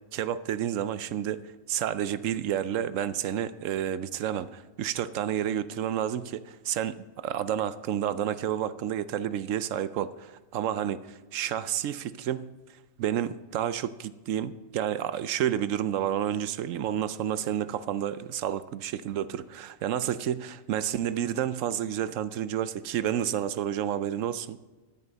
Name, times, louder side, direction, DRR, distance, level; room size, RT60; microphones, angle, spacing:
voice 1, 0.1-12.5 13.0-24.6, right 10 dB, 75° right, 0.9 m, -30 dB
13.0 x 10.0 x 4.0 m
omnidirectional pair, 1.4 m